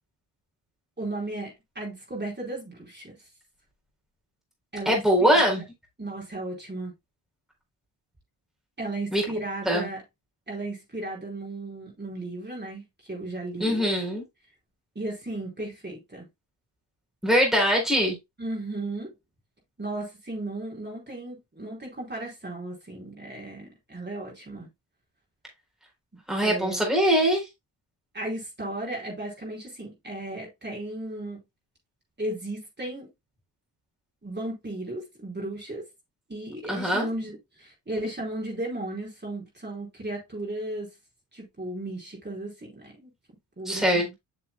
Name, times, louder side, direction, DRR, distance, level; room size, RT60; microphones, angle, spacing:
voice 1, 1.0-3.1 4.7-5.5 6.0-6.9 8.8-10.0 10.5-13.8 14.9-16.3 18.4-19.1 19.8-24.7 26.4-26.8 28.1-31.4 32.2-33.1 34.2-35.9 36.3-40.9 41.3-43.1 43.6-44.1, right 1 dB, 25° right, 4.3 m, -35 dB
voice 2, 4.9-5.6 9.1-9.2 9.7-9.9 13.6-14.2 17.2-18.2 26.3-27.4 36.7-37.1 43.7-44.1, equal, ahead, 4.0 m, -22 dB
8.0 x 6.8 x 2.3 m
cardioid pair, 65°, 43 cm